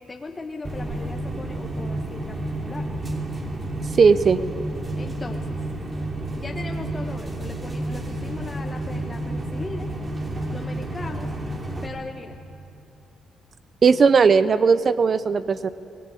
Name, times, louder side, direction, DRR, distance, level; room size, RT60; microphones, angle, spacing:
voice 1, 0.1-2.9 5.0-5.6 6.4-9.9 10.5-11.3 11.8-12.3, left 3 dB, 25° left, 2 dB, 1.4 m, -38 dB
sound 1, 0.6-11.9, right 1 dB, 30° right, 2.9 m, -30 dB
voice 2, 4.0-4.4 13.8-15.7, right 5 dB, 45° right, 15 dB, 0.6 m, -17 dB
26.0 x 19.0 x 8.5 m, 2.6 s
cardioid pair, 90°, 0 cm